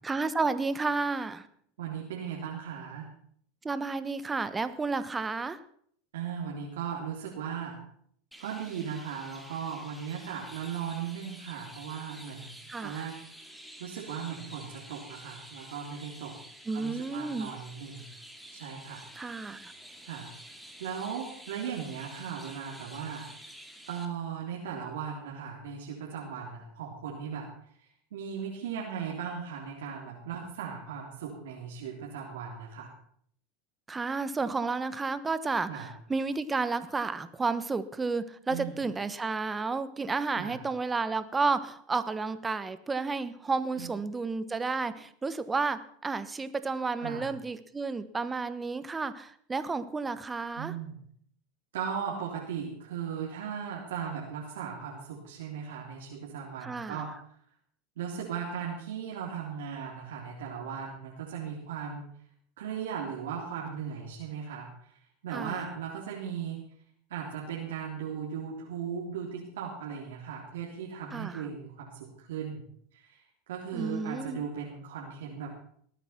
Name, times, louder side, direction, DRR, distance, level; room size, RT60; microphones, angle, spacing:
voice 1, 0.0-1.5 3.6-5.6 12.7-13.1 16.7-17.5 19.1-19.7 33.9-50.7 56.6-57.0 65.3-65.7 71.1-71.4 73.7-74.4, right 4 dB, 15° right, 13 dB, 1.2 m, -31 dB
voice 2, 1.8-3.1 6.1-7.8 8.4-12.5 12.8-13.1 13.8-16.3 16.7-18.1 18.5-19.0 20.0-20.3 20.8-23.3 23.9-27.5 28.1-32.9 35.7-35.9 38.5-38.7 40.4-40.6 43.8-43.9 47.0-47.3 50.6-51.0 51.7-57.1 58.0-62.0 62.6-64.7 65.2-66.6 67.1-72.6 72.9-73.2 73.5-75.5, right 7 dB, 80° right, -3 dB, 3.4 m, -37 dB
Chirp tweet, 8.3-24.1, right 1 dB, ahead, 2.3 m, -49 dB
19.5 x 9.1 x 6.0 m, 0.63 s
hypercardioid pair, 105°, 0 cm